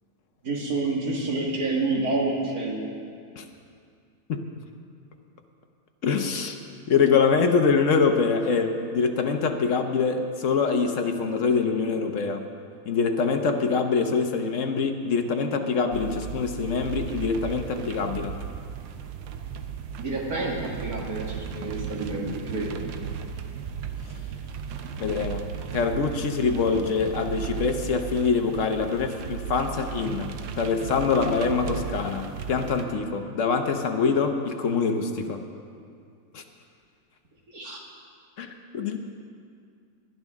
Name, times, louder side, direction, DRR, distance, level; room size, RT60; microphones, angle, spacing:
voice 1, 0.4-2.9 20.0-22.8 37.5-37.8, right 2 dB, 50° right, -1 dB, 2.2 m, -28 dB
voice 2, 6.0-6.6 6.9-12.4 12.9-18.3 25.0-25.4 25.7-35.4 36.3-36.4 38.4-38.5 38.7-39.0, left 5 dB, 55° left, 5 dB, 1.0 m, -24 dB
sound 1, 15.9-32.9, right 8 dB, 80° right, 1.4 m, -35 dB
19.5 x 11.0 x 3.6 m, 2.3 s
omnidirectional pair, 2.0 m